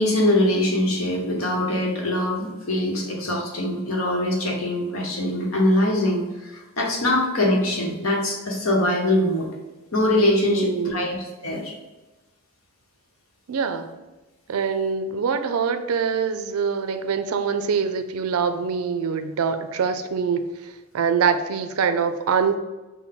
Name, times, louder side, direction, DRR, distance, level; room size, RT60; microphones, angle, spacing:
voice 1, 0.0-9.5 9.9-11.2 11.4-11.7, left 1 dB, 75° left, -1 dB, 1.0 m, -23 dB
voice 2, 10.5-11.1 13.5-13.9 14.5-22.6, right 6 dB, 85° right, 9 dB, 0.4 m, -24 dB
5.7 x 2.2 x 3.5 m, 1.1 s
head